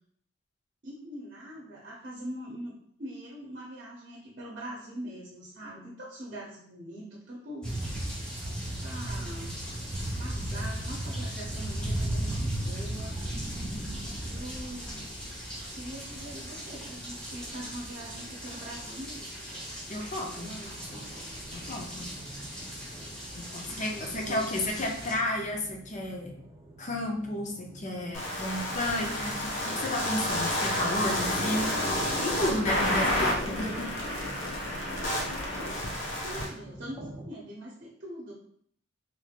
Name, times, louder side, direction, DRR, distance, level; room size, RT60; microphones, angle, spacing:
voice 1, 0.8-8.1 8.7-9.6 10.2-13.2 14.2-15.0 15.7-19.6 20.2-21.0 23.6-24.5 33.0-33.3 33.6-33.9 34.8-35.1 35.8-38.3, right 1 dB, 55° right, -4 dB, 0.7 m, -43 dB
sound 1, 7.6-25.1, right 1 dB, 5° left, 1.2 m, -36 dB
voice 2, 19.9-20.5 21.5-22.1 23.3-26.3 26.8-31.7 32.2-33.9, left 1 dB, 40° left, 1 dB, 0.6 m, -32 dB
sound 2, 20.4-37.2, right 1 dB, 15° right, 0.6 m, -48 dB
sound 3, 28.1-36.5, left 1 dB, 80° left, 0.9 m, -30 dB
3.2 x 3.0 x 2.4 m, 0.64 s
head